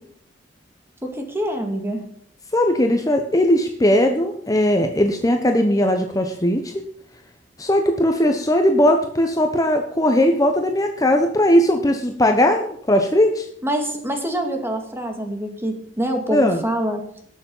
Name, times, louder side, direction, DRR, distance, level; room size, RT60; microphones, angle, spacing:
voice 1, 1.0-2.0 13.6-17.1, right 1 dB, 15° right, 4 dB, 2.1 m, -25 dB
voice 2, 2.5-6.8 7.6-13.5 16.3-16.6, left 1 dB, 20° left, 4 dB, 0.9 m, -18 dB
18.0 x 7.0 x 5.5 m, 0.66 s
head